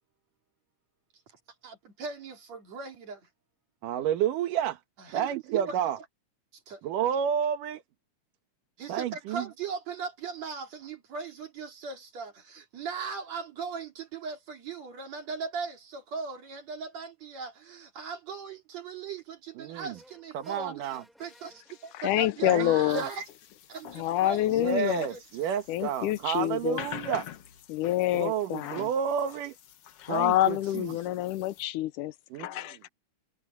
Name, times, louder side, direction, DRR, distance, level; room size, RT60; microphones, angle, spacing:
voice 1, 1.6-3.3 5.0-5.7 6.5-6.8 8.8-23.3 23.7-25.6, right 5 dB, 55° right, 3.7 m, -39 dB
voice 2, 3.8-4.8 5.1-6.0 6.8-7.8 8.9-9.5 19.6-19.9 20.3-21.0 22.4-23.1 24.5-27.2 28.1-28.5 28.7-29.5 30.1-30.9 32.3-32.7, right 9 dB, 80° right, 2.9 m, -30 dB
sound 1, 19.9-22.6, equal, ahead, 6.8 m, -59 dB
voice 3, 21.9-23.0 24.0-25.1 25.7-26.8 27.8-28.3 30.0-32.1 32.4-32.9, left 14 dB, 85° left, 2.2 m, -27 dB
sound 2, 22.9-31.6, left 10 dB, 60° left, 1.9 m, -47 dB
omnidirectional pair, 3.7 m